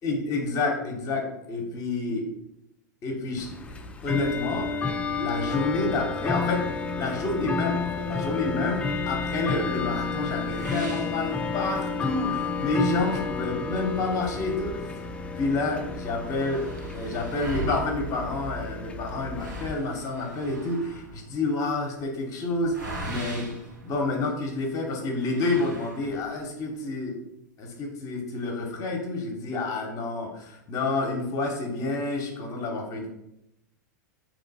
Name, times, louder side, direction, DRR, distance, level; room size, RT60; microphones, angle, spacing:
voice 1, 0.0-2.2 3.0-4.8 5.2-6.7 6.9-14.9 15.4-23.5 23.8-27.2 27.6-33.1, left 3 dB, 35° left, 1 dB, 0.9 m, -29 dB
Bell / Tick-tock, 3.4-19.7, left 4 dB, 10° left, 0.3 m, -31 dB
sound 1, 10.5-12.0 12.4-12.5 13.0-13.1 13.8-15.2 15.5-15.6 15.8-24.6 25.2-26.4, right 2 dB, 80° right, 1.1 m, -40 dB
3.7 x 3.0 x 4.0 m, 0.85 s
hypercardioid pair, 105°, 10 cm